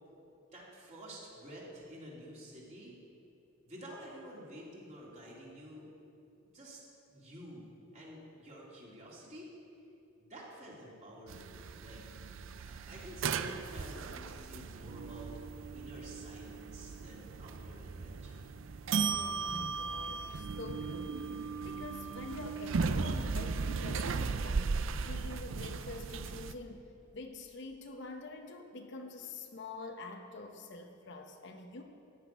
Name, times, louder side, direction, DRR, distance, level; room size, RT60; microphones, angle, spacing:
voice 1, 0.5-3.0 3.6-5.9 6.4-6.8 7.1-9.5 10.2-12.0 12.6-15.3 15.7-18.4, equal, 30° right, -5 dB, 2.9 m, -50 dB
sound 1, 11.3-26.5, right 5 dB, 65° right, 0.5 m, -37 dB
voice 2, 19.1-21.4 21.6-31.8, left 2 dB, 55° left, 4 dB, 0.9 m, -46 dB
14.0 x 6.0 x 9.3 m, 2.7 s
head